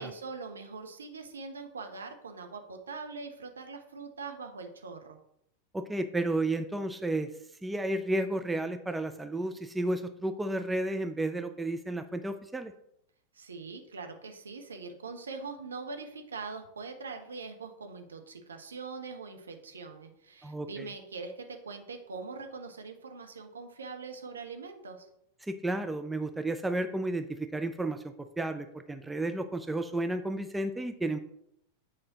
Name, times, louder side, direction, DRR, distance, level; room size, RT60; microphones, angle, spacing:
voice 1, 0.0-5.2 13.3-25.1, right 4 dB, 70° right, 5 dB, 0.9 m, -42 dB
voice 2, 5.7-7.3 7.6-12.7 20.4-20.9 25.4-31.2, right 2 dB, 5° right, 9 dB, 0.4 m, -32 dB
8.4 x 4.8 x 2.9 m, 0.74 s
figure-of-eight pair, 90°, 0 cm